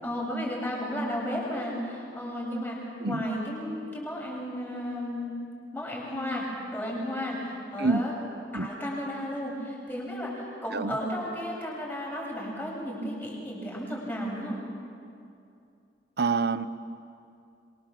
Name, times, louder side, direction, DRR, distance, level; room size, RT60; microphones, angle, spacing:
voice 1, 0.0-5.3 5.7-8.1 8.5-14.6, equal, 10° left, -3 dB, 7.7 m, -33 dB
voice 2, 16.2-16.7, right 4 dB, 65° right, 13 dB, 0.9 m, -26 dB
27.0 x 24.0 x 7.6 m, 2.5 s
head